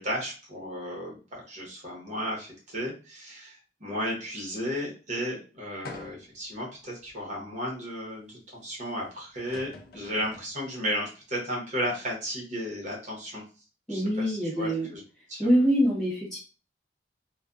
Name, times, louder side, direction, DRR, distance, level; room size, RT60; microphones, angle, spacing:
voice 1, 0.0-13.4 13.9-15.0 15.3-15.5, equal, 40° right, -4 dB, 1.0 m, -34 dB
sound 1, 5.8-6.5 7.1-7.2 9.0-9.1 9.3-10.5, left 2 dB, 55° left, 0.5 m, -45 dB
voice 2, 13.9-14.9 15.4-16.4, equal, ahead, -6 dB, 1.3 m, -24 dB
2.3 x 2.3 x 2.5 m, 0.35 s
head